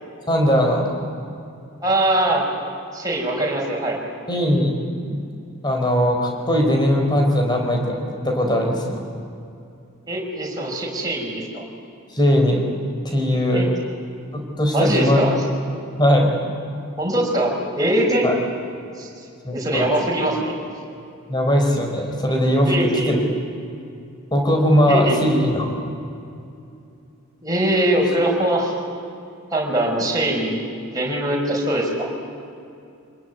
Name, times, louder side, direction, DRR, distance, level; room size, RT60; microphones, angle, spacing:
voice 1, 0.3-0.8 4.3-4.7 5.1-5.2 5.6-8.0 8.2-9.0 12.1-12.6 13.0-13.6 14.3-15.3 16.0-16.3 18.2-18.3 19.4-19.9 21.3-22.7 23.1-23.2 24.3-25.7, equal, 20° left, 2 dB, 4.7 m, -19 dB
voice 2, 1.8-2.4 2.9-4.0 10.1-11.6 13.5-13.7 14.7-15.4 17.0-18.3 19.0-19.1 19.5-20.5 21.3-21.4 22.7-23.2 24.9-25.3 27.4-28.7 29.5-30.7 30.9-32.1, right 1 dB, 15° right, -2 dB, 5.7 m, -22 dB
27.0 x 20.5 x 9.5 m, 2.6 s
head